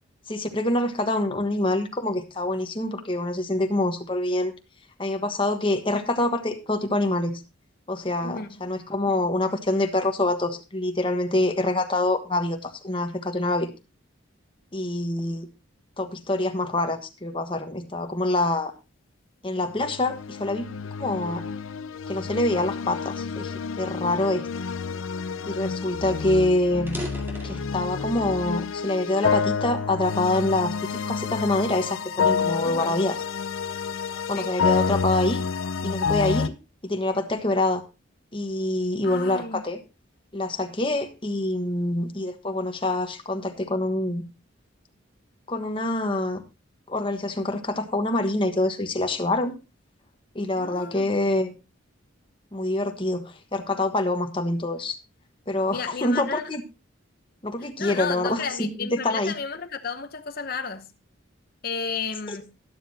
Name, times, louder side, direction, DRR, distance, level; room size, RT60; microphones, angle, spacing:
voice 1, 0.3-4.5 5.0-7.4 7.9-13.7 14.7-15.5 16.0-18.7 19.4-20.7 21.0-21.4 22.1-24.5 25.5-27.0 27.4-33.2 34.3-35.4 35.8-36.5 36.8-37.8 38.3-39.8 40.3-44.2 45.5-46.4 46.9-49.6 50.3-51.5 52.5-55.0 55.5-56.6 57.4-59.3, left 2 dB, 25° left, 1.3 m, -26 dB
voice 2, 8.2-8.6 32.6-32.9 34.3-34.5 39.0-39.6 50.6-51.1 55.7-56.4 57.6-60.9 61.6-62.5, left 5 dB, 50° left, 0.8 m, -33 dB
sound 1, 19.7-36.5, left 5 dB, 85° left, 0.5 m, -29 dB
sound 2, 26.9-28.3 28.9-30.1 30.7-31.0 31.6-33.7, equal, 10° right, 2.0 m, -41 dB
12.5 x 11.5 x 2.8 m
head